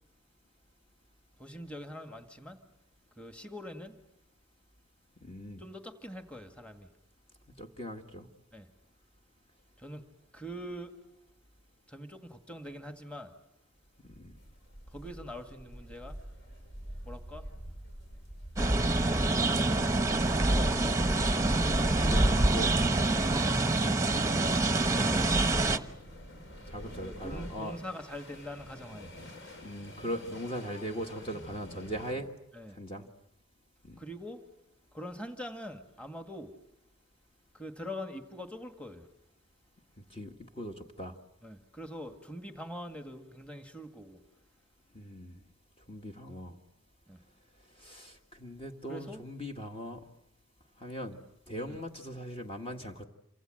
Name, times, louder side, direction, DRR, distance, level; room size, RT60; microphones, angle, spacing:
voice 1, 1.4-2.6 3.2-4.0 5.6-6.9 8.5-8.7 9.8-10.9 11.9-13.3 14.9-16.2 17.0-17.5 18.9-19.7 20.2-21.2 24.1-26.0 26.9-29.1 32.5-32.8 34.0-34.4 34.9-36.5 37.5-39.1 41.4-44.2 47.1-47.2 47.8-48.1 48.9-49.2 51.7-51.8, equal, 5° left, 6 dB, 1.8 m, -44 dB
voice 2, 5.2-5.6 7.6-8.3 14.1-14.3 21.9-22.7 26.7-27.8 29.6-32.3 32.7-33.1 33.8-34.0 40.1-41.1 44.9-45.4 45.9-46.6 47.8-50.0 50.8-51.2 51.5-53.0, equal, 25° left, 4 dB, 1.7 m, -40 dB
sound 1, 14.0-32.1, equal, 60° left, 5.9 m, -47 dB
sound 2, 18.6-25.8, right 2 dB, 15° right, 1.0 m, -26 dB
28.0 x 25.5 x 7.8 m, 0.76 s
head